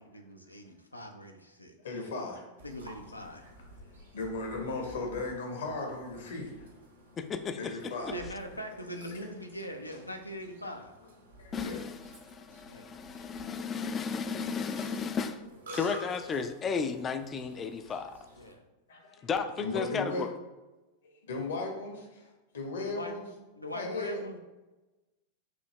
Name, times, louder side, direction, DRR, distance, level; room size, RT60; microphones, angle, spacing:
voice 1, 0.1-1.8 2.6-3.4 8.1-10.9 12.7-12.9 18.4-18.6 19.4-19.6 22.7-23.1 23.6-24.4, equal, 85° left, 4 dB, 0.5 m, -42 dB
voice 2, 1.8-2.5 4.1-6.7 7.6-8.2 9.1-9.2 11.4-11.8 13.6-13.7 18.9-19.2 19.6-20.3 21.2-23.2 23.7-24.2, left 3 dB, 65° left, 2 dB, 1.1 m, -36 dB
Burping eructation, 2.6-18.5, right 1 dB, 70° right, 1.1 m, -51 dB
voice 3, 7.2-8.1 11.5-15.4 15.7-18.2 19.2-20.3, left 5 dB, 25° left, 9 dB, 0.4 m, -34 dB
6.1 x 2.8 x 3.1 m, 1.1 s
figure-of-eight pair, 90°, 0 cm